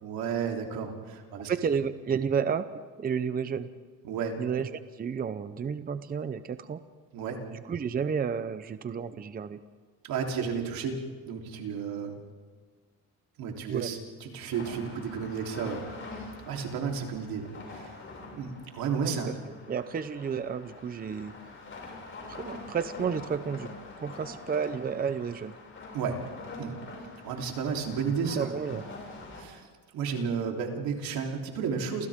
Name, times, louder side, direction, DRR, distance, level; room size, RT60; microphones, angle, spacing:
voice 1, 0.0-1.5 4.0-4.4 7.1-7.4 10.0-12.2 13.4-16.1 16.5-17.9 18.3-19.3 25.9-26.2 26.6-26.8 27.2-28.5 29.4-29.6 29.9-32.1, right 6 dB, 80° right, 1 dB, 3.7 m, -32 dB
voice 2, 1.5-2.7 3.0-3.7 4.4-6.8 7.5-9.6 13.7-13.9 19.0-19.4 19.7-21.3 22.3-23.7 24.0-25.5 28.3-28.8, right 6 dB, 25° right, 11 dB, 0.7 m, -31 dB
sound 1, 14.5-29.4, left 3 dB, 35° left, 6.4 m, -45 dB
29.5 x 28.5 x 3.7 m, 1.6 s
cardioid pair, 145°, 35 cm